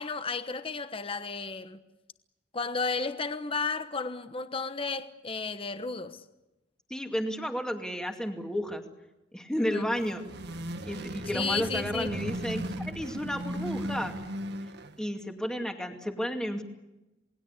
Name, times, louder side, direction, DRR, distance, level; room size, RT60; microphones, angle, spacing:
voice 1, 0.0-1.8 2.5-6.2 9.6-9.9 11.3-12.1, left 4 dB, 30° left, 1.2 m, -33 dB
voice 2, 6.9-8.8 9.3-10.2 10.8-14.2 15.0-16.6, equal, 5° left, 2.4 m, -32 dB
sound 1, 9.8-15.1, right 1 dB, 60° right, 1.7 m, -37 dB
28.5 x 20.0 x 8.3 m
head